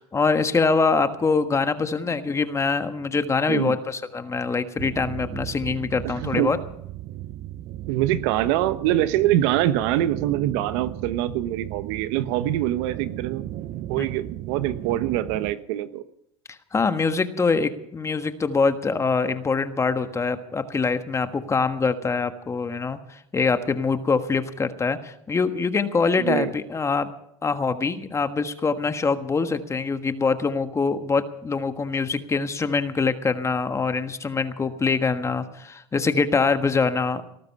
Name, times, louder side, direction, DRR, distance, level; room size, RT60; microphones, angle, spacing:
voice 1, 0.0-6.6 14.0-14.1 16.5-27.1 27.4-37.2, left 4 dB, 20° left, 9 dB, 1.4 m, -24 dB
sound 1, 4.8-15.5, right 14 dB, 50° right, 0.8 m, -36 dB
voice 2, 6.0-6.5 7.9-13.4 13.9-16.0 26.2-26.5, right 13 dB, 70° right, 12 dB, 1.1 m, -24 dB
19.0 x 13.5 x 5.5 m, 0.74 s
supercardioid pair, 110°, 15 cm